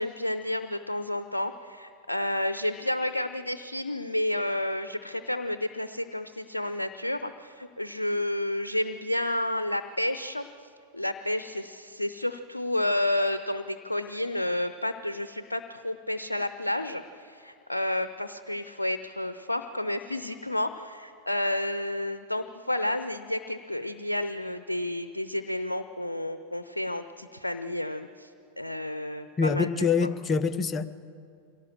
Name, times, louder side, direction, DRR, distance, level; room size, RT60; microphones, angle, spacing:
voice 1, 0.0-10.5 10.9-28.3 28.6-29.7, left 1 dB, 85° left, 10 dB, 0.7 m, -31 dB
voice 2, 29.4-30.9, left 5 dB, 20° left, 10 dB, 0.8 m, -25 dB
24.0 x 17.5 x 7.5 m, 2.5 s
figure-of-eight pair, 90°, 0 cm